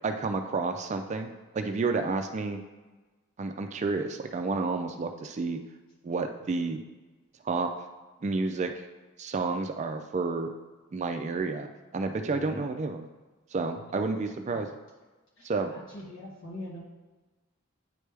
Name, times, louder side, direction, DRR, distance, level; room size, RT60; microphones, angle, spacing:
voice 1, 0.0-2.6 3.4-5.6 6.0-6.8 7.4-7.7 8.2-8.9 9.2-10.5 10.9-11.7 11.9-13.0 13.5-14.7 15.4-15.7, right 3 dB, 30° right, 6 dB, 0.3 m, -30 dB
voice 2, 12.3-12.7 13.9-14.3 14.5-14.7 15.4-16.8, left 1 dB, 60° left, -5 dB, 1.8 m, -43 dB
8.9 x 3.2 x 3.3 m, 1.2 s
head